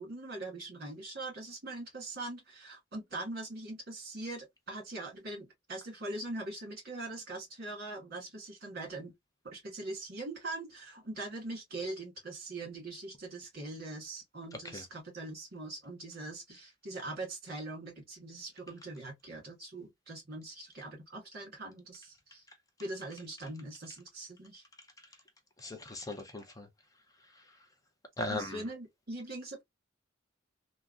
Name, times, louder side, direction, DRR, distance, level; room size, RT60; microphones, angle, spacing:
voice 1, 0.0-9.1 9.4-22.4 22.8-24.6 28.3-29.6, right 2 dB, 55° right, 1.6 m, -42 dB
voice 2, 14.5-14.8 25.6-26.7 27.3-27.5 28.2-28.6, left 2 dB, 20° left, 0.5 m, -39 dB
3.5 x 2.1 x 2.3 m
head